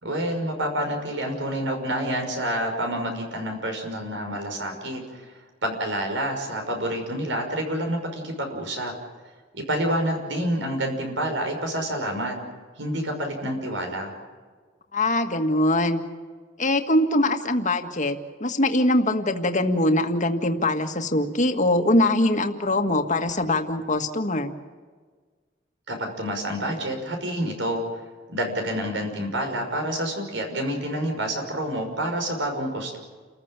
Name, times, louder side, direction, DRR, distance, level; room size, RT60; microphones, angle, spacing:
voice 1, 0.0-5.3 5.6-8.9 9.5-12.4 12.8-14.1 25.9-27.8 28.3-33.0, right 1 dB, 80° right, 3 dB, 5.8 m, -28 dB
voice 2, 14.9-16.0 16.6-24.5, left 1 dB, 40° left, 6 dB, 1.8 m, -22 dB
30.0 x 15.0 x 8.9 m, 1.5 s
head